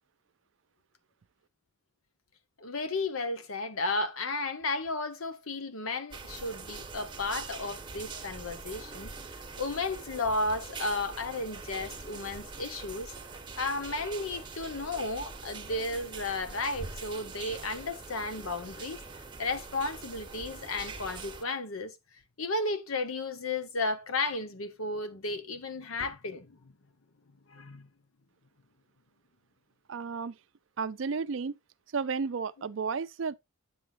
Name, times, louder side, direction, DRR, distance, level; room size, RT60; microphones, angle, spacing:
voice 1, 2.6-9.1 9.6-13.1 13.6-19.0 19.4-21.9 22.4-26.7 27.5-27.9, left 2 dB, 85° left, 1.1 m, -33 dB
sound 1, 6.1-21.4, right 4 dB, 25° right, 1.2 m, -43 dB
voice 2, 29.9-30.4 30.8-31.5 31.9-33.3, right 5 dB, 65° right, 0.5 m, -32 dB
9.4 x 7.6 x 2.5 m
head